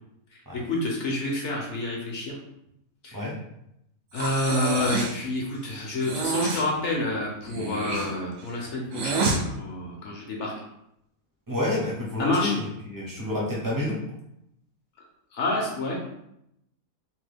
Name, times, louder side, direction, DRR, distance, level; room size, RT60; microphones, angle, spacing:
voice 1, 0.3-2.4 3.0-3.2 4.1-10.5 12.2-12.5 15.3-16.0, left 2 dB, 65° left, -2 dB, 0.9 m, -28 dB
Breathing, 4.1-5.2 6.0-6.7 7.4-9.4, right 3 dB, 75° right, 0.9 m, -28 dB
voice 2, 11.5-14.0, left 2 dB, 25° right, -5 dB, 0.4 m, -29 dB
2.9 x 2.2 x 3.3 m, 0.79 s
omnidirectional pair, 1.5 m